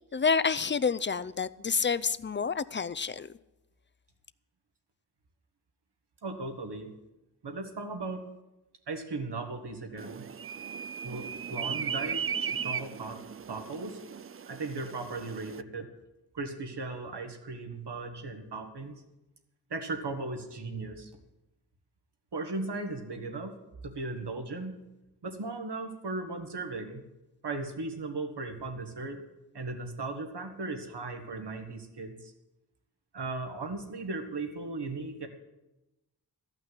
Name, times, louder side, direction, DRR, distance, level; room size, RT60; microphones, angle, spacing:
voice 1, 0.1-3.3, left 5 dB, 30° left, 0.4 m, -28 dB
voice 2, 6.2-6.9 7.4-8.3 8.9-10.3 11.0-13.2 13.5-14.0 14.5-15.9 16.3-19.0 19.7-21.1 22.3-23.6 23.8-24.9 25.2-27.1 27.4-29.3 29.5-32.3 33.1-35.3, right 3 dB, 80° right, 1.7 m, -37 dB
sound 1, 10.0-15.6, right 7 dB, 35° right, 0.4 m, -37 dB
14.0 x 5.9 x 9.7 m
wide cardioid pair, 75°, 40 cm